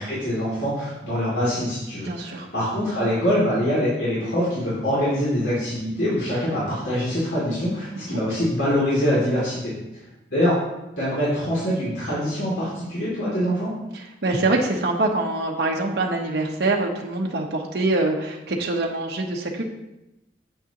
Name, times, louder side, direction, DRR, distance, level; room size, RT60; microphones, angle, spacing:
voice 1, 0.0-10.0 10.3-10.5 11.0-13.7, equal, 85° left, -9 dB, 2.8 m, -24 dB
voice 2, 2.0-2.5 8.0-8.2 13.9-19.6, right 2 dB, 75° right, 0 dB, 1.0 m, -24 dB
9.0 x 8.0 x 3.0 m, 0.94 s
head